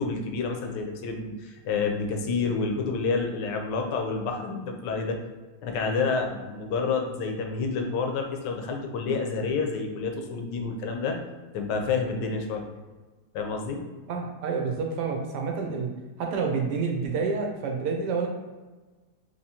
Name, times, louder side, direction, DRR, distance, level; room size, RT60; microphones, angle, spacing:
voice 1, 0.0-5.2 5.6-11.2 11.5-12.6 13.3-13.8, left 4 dB, 80° left, 3 dB, 1.2 m, -29 dB
voice 2, 14.1-15.9 16.2-18.3, right 5 dB, 75° right, 1 dB, 1.1 m, -28 dB
3.5 x 2.9 x 2.8 m, 1.3 s
omnidirectional pair, 1.9 m